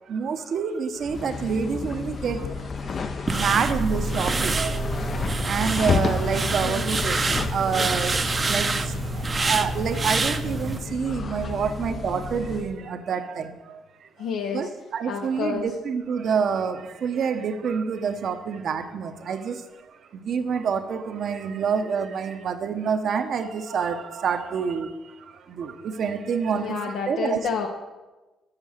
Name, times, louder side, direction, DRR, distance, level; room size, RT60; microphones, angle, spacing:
voice 1, 0.1-14.1 14.5-27.4, right 6 dB, 60° right, 8 dB, 0.8 m, -28 dB
sound 1, 1.0-12.7, left 5 dB, 45° left, 0.5 m, -32 dB
sound 2, 3.3-10.8, right 3 dB, 30° right, 0.6 m, -26 dB
voice 2, 14.2-14.7 15.1-15.7 26.5-27.7, left 6 dB, 85° left, 3 dB, 0.7 m, -29 dB
7.5 x 7.2 x 6.4 m, 1.2 s
cardioid pair, 90°, 0 cm